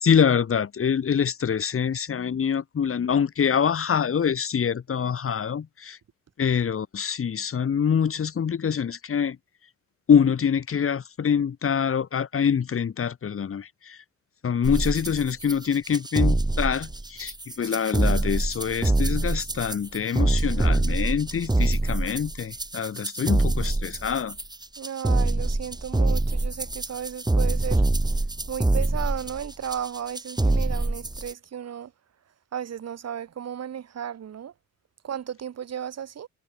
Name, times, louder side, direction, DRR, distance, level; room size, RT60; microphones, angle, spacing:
voice 1, 0.0-6.0 6.4-9.4 10.1-14.0 14.4-24.4, left 7 dB, 45° left, 2.8 m, -25 dB
sound 1, 14.6-31.3, right 2 dB, 15° right, 5.3 m, -25 dB
voice 2, 24.8-27.9 28.5-31.9 32.5-34.5 35.0-36.3, right 9 dB, 55° right, 3.8 m, -34 dB
cardioid pair, 90°, 30 cm